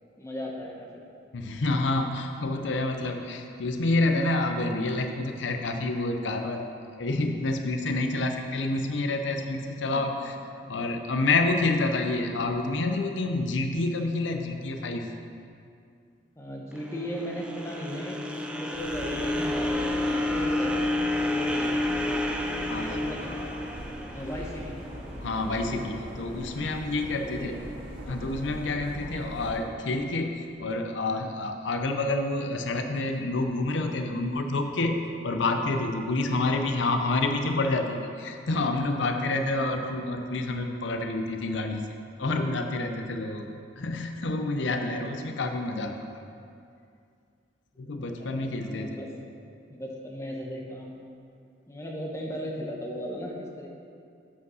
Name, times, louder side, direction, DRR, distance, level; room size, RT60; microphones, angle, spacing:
voice 1, 0.2-1.0 9.9-10.1 16.4-22.2 22.6-23.5 24.0-24.7 27.2-27.6 29.2-29.5 36.3-36.5 39.2-39.5 44.7-45.0 48.1-49.1 49.7-51.0 51.7-53.7, equal, 15° left, -1 dB, 0.9 m, -37 dB
voice 2, 1.3-6.7 6.9-10.4 10.7-15.1 22.7-23.0 25.2-27.5 28.1-41.9 42.2-43.5 43.8-45.9 47.8-49.0, left 2 dB, 80° left, 5 dB, 0.6 m, -28 dB
sound 1, 16.8-25.0, left 1 dB, 5° right, 0.4 m, -30 dB
sound 2, 18.7-29.6, equal, 30° right, 1.7 m, -40 dB
8.1 x 5.0 x 6.2 m, 2.4 s
head